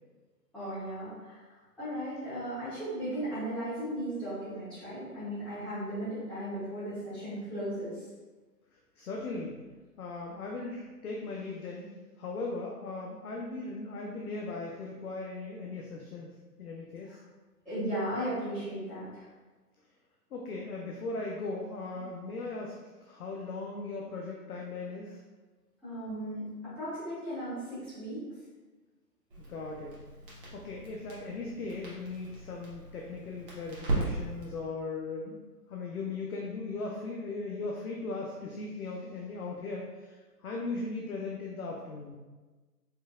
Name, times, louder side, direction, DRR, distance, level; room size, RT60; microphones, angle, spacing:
voice 1, 0.5-1.5 1.8-8.1 17.1-17.2 17.6-19.3 25.8-28.2, right 1 dB, ahead, -17 dB, 1.2 m, -36 dB
voice 2, 8.7-9.6 10.0-11.9 12.2-17.2 20.3-25.2 29.4-30.0 30.5-35.4 35.7-42.2, left 3 dB, 60° left, -1 dB, 0.7 m, -38 dB
Crackle, 29.3-34.6, right 2 dB, 35° right, 1.1 m, -38 dB
4.3 x 3.1 x 2.5 m, 1.3 s
figure-of-eight pair, 140°, 49 cm